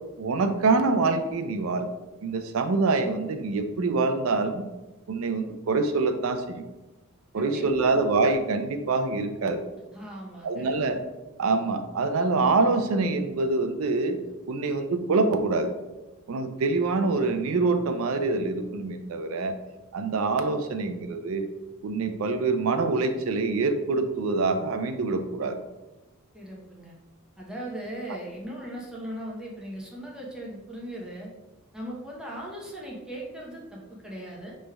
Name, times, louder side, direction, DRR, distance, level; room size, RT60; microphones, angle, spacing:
voice 1, 0.2-1.9 2.2-4.7 5.1-6.6 7.3-9.6 10.4-11.0 11.4-14.2 14.5-15.7 16.3-19.6 19.9-21.5 21.8-25.6, right 3 dB, 75° right, 7 dB, 0.4 m, -25 dB
voice 2, 7.3-7.7 9.9-10.7 26.3-26.9 27.4-31.3 31.7-34.6, right 1 dB, 5° right, -4 dB, 0.7 m, -38 dB
5.1 x 3.2 x 2.2 m, 1.1 s
head